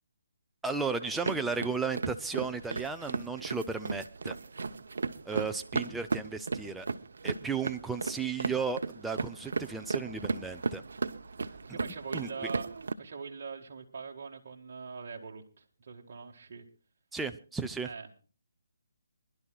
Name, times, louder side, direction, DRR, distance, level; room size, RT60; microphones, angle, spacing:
voice 1, 0.6-4.4 5.3-6.9 7.2-10.8 12.1-12.3 17.1-17.9, right 5 dB, 5° right, 6 dB, 0.5 m, -34 dB
sound 1, 1.0-12.9, right 4 dB, 70° right, 0.8 m, -36 dB
voice 2, 11.5-16.7 17.8-18.1, right 5 dB, 45° right, 0 dB, 1.7 m, -43 dB
26.5 x 11.5 x 2.4 m, 0.36 s
hypercardioid pair, 165°, 0 cm